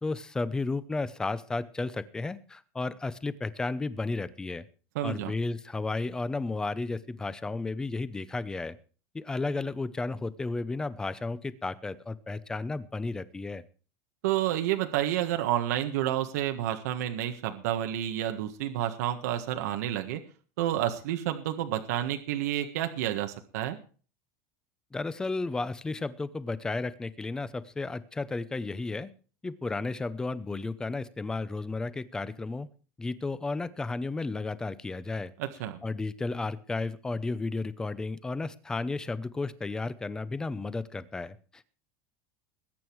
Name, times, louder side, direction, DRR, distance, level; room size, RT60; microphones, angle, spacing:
voice 1, 0.0-4.6 5.0-8.8 9.1-13.6 24.9-29.1 29.4-32.7 33.0-35.3 35.8-41.6, left 3 dB, 10° left, 15 dB, 0.7 m, -33 dB
voice 2, 4.9-5.3 14.2-20.2 20.6-23.8 35.4-35.8, right 12 dB, 90° right, 5 dB, 1.6 m, -30 dB
20.5 x 9.0 x 4.7 m, 0.39 s
cardioid pair, 170°, 8 cm